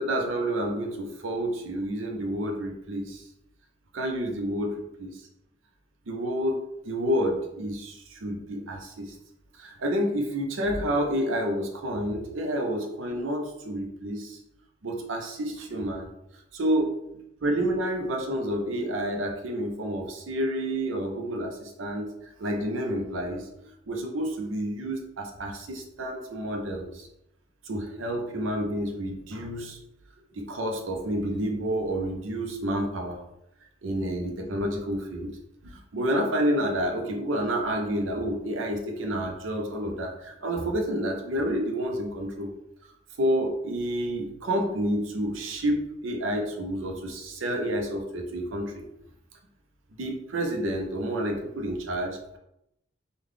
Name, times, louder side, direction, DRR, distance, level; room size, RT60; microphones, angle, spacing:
voice 1, 0.0-3.2 3.9-5.1 6.1-6.6 6.8-9.2 9.6-14.4 14.8-16.1 16.5-16.9 17.4-22.1 22.4-23.5 23.9-27.1 27.7-29.8 30.3-33.2 33.8-35.3 35.6-42.5 43.2-48.8 50.0-52.4, equal, 85° right, 3 dB, 0.5 m, -29 dB
3.7 x 2.2 x 3.2 m, 0.81 s
head